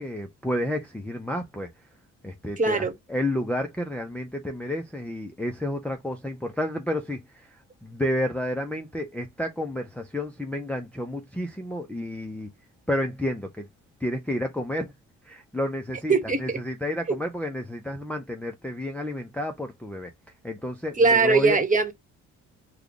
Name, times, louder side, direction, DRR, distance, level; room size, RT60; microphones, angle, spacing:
voice 1, 0.0-1.7 2.2-7.5 7.8-12.5 12.9-13.7 14.0-14.9 15.2-16.1 16.4-20.1 20.4-21.6, left 1 dB, 5° left, 0.6 m, -30 dB
voice 2, 2.6-2.9 16.1-16.6 21.0-21.9, right 4 dB, 25° right, 1.3 m, -21 dB
3.1 x 2.4 x 3.8 m
cardioid pair, 90°, 30 cm